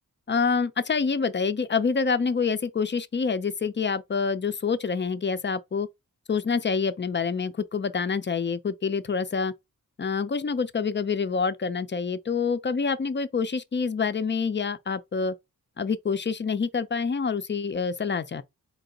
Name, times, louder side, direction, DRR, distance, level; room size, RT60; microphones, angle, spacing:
voice 1, 0.3-5.9 6.3-9.5 10.0-15.3 15.8-18.4, left 5 dB, 30° left, 0.4 m, -27 dB
4.2 x 2.9 x 3.8 m
wide cardioid pair, 100°, 35 cm